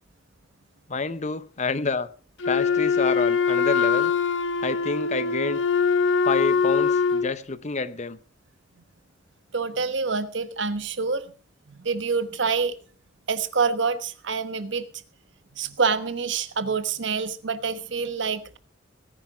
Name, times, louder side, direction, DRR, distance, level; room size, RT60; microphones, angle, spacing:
voice 1, 0.9-2.1 2.5-4.1 4.6-5.6 6.3-8.2, left 3 dB, 35° left, 0.8 m, -28 dB
Wind instrument woodwind instrument, 2.4-7.3, left 5 dB, 75° left, 1.1 m, -22 dB
voice 2, 9.5-11.3 11.7-12.7 13.3-14.9 15.5-18.6, right 5 dB, 70° right, 1.2 m, -26 dB
18.0 x 10.5 x 4.8 m
head